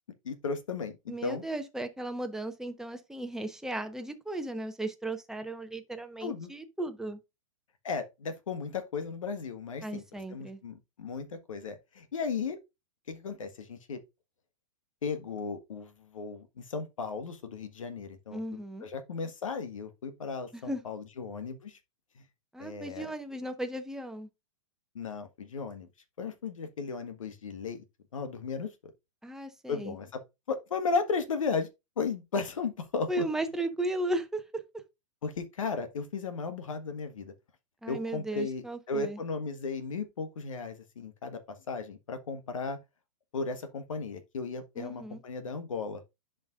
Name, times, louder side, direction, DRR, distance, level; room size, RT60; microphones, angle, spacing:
voice 1, 0.2-1.4 6.2-6.5 7.8-10.0 10.3-12.6 13.1-14.0 15.0-18.4 18.8-21.8 22.6-23.1 24.9-25.9 26.2-27.8 28.1-28.7 29.7-30.2 30.5-31.7 32.0-33.2 35.2-37.3 37.9-41.4 41.7-42.8 43.3-46.0, left 4 dB, 75° left, 1.4 m, -35 dB
voice 2, 1.1-7.2 9.8-10.6 18.3-18.8 20.5-20.8 22.5-24.3 29.2-29.9 33.1-34.6 37.8-39.2 44.8-45.2, right 1 dB, 5° right, 1.0 m, -36 dB
10.5 x 5.3 x 2.5 m
hypercardioid pair, 110°, 17 cm